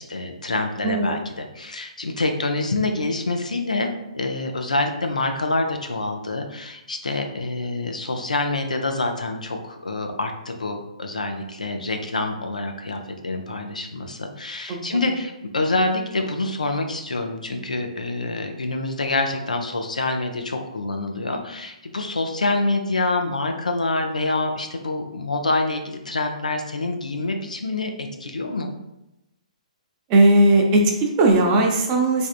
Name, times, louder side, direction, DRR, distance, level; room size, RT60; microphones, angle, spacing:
voice 1, 0.0-28.7, left 2 dB, 85° left, 4 dB, 0.4 m, -26 dB
voice 2, 30.1-32.3, right 2 dB, 30° right, 1 dB, 0.6 m, -17 dB
3.3 x 2.6 x 2.4 m, 0.92 s
figure-of-eight pair, 125°, 4 cm